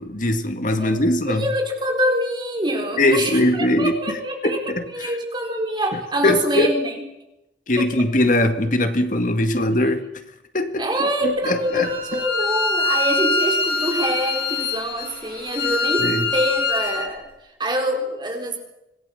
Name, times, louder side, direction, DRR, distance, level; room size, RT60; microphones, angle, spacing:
voice 1, 0.0-1.5 3.0-4.2 4.4-4.9 6.2-6.7 7.7-10.0 10.5-10.9 11.2-12.2 16.0-16.3, left 1 dB, 45° left, 8 dB, 2.1 m, -21 dB
voice 2, 1.3-4.6 4.9-7.0 7.8-7.9 10.8-17.3 17.6-18.6, equal, 25° right, 3 dB, 4.1 m, -25 dB
Bowed string instrument, 11.6-17.0, left 3 dB, 65° left, 7.9 m, -24 dB
26.0 x 18.0 x 7.1 m, 0.90 s
head